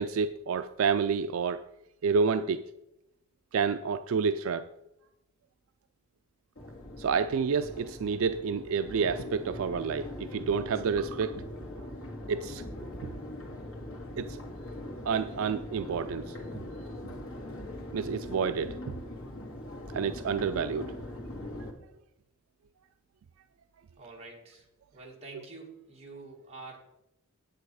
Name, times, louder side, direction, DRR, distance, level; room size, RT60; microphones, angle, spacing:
voice 1, 0.0-1.6 2.0-2.6 3.5-4.7 7.0-11.4 12.3-12.6 13.0-13.1 14.2-14.4 15.0-16.3 17.9-18.8 19.9-20.9, right 5 dB, 70° right, 10 dB, 0.4 m, -29 dB
Crowd, 6.6-21.7, left 1 dB, 70° left, 2.0 m, -41 dB
voice 2, 24.0-24.6 24.9-26.8, right 3 dB, 30° right, -2 dB, 2.3 m, -47 dB
9.2 x 8.3 x 4.8 m, 0.88 s
head